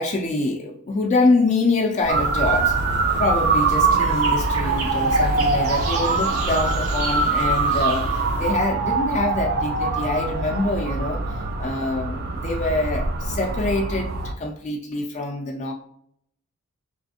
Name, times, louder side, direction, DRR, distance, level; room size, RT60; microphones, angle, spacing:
voice 1, 0.0-2.8 3.2-11.2 11.6-15.7, left 2 dB, 30° left, 1 dB, 0.3 m, -25 dB
sound 1, 2.0-8.5, right 2 dB, 80° right, 0.8 m, -31 dB
Motor vehicle (road) / Siren, 2.1-14.3, right 3 dB, 45° right, 0.3 m, -23 dB
3.3 x 3.0 x 2.7 m, 0.70 s
head